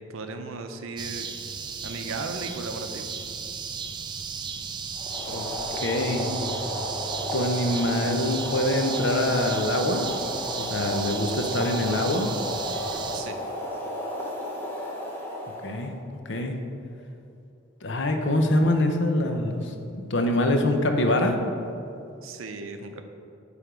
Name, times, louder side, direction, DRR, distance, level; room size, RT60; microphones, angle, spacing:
voice 1, 0.1-1.3 1.8-3.1 13.1-13.4 22.2-23.0, right 3 dB, 85° right, 6 dB, 0.6 m, -36 dB
sound 1, 1.0-13.2, right 5 dB, 20° right, 0.3 m, -34 dB
Boiling, 4.9-15.9, equal, 10° left, 1.0 m, -33 dB
voice 2, 5.8-6.3 7.3-10.1 10.6-12.3 15.6-15.9 16.3-16.6 17.8-21.4, left 1 dB, 60° left, 5 dB, 0.7 m, -24 dB
9.1 x 3.5 x 5.0 m, 2.6 s
head